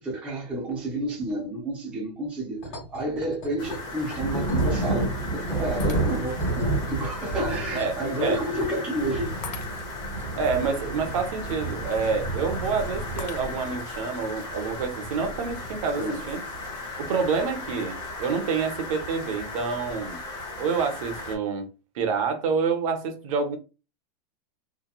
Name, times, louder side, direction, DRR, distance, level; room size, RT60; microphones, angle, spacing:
voice 1, 0.0-2.6 2.9-9.3 16.0-16.2, right 1 dB, 5° right, 0.4 m, -30 dB
sound 1, 2.6-8.7, left 1 dB, 45° left, 1.1 m, -42 dB
sound 2, 3.6-21.3, right 1 dB, 20° left, 0.7 m, -32 dB
Shatter, 5.8-6.5 7.1-7.2 9.4-10.2 13.2-13.9, left 7 dB, 80° left, 0.6 m, -43 dB
voice 2, 10.4-16.4 17.0-20.2 20.6-21.7 21.9-23.6, right 5 dB, 55° right, 0.6 m, -27 dB
2.8 x 2.1 x 2.3 m
supercardioid pair, 175°, 21 cm